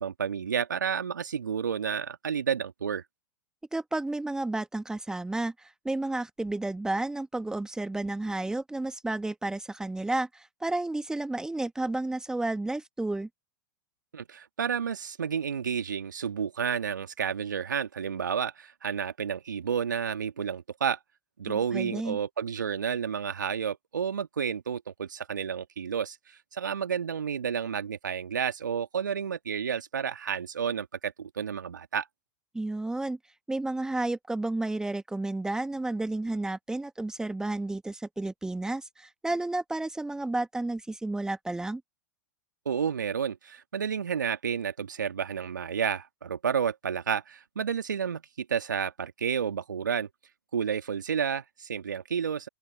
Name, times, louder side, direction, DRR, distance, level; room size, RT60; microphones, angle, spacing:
voice 1, 0.0-3.0 14.1-21.0 21.4-32.1 42.7-50.1 50.5-52.5, right 7 dB, 75° right, 1.9 m, -31 dB
voice 2, 3.7-13.3 21.5-22.2 32.5-33.2 33.5-41.8, right 2 dB, 5° right, 1.3 m, -32 dB
open air
figure-of-eight pair, 95°, 10 cm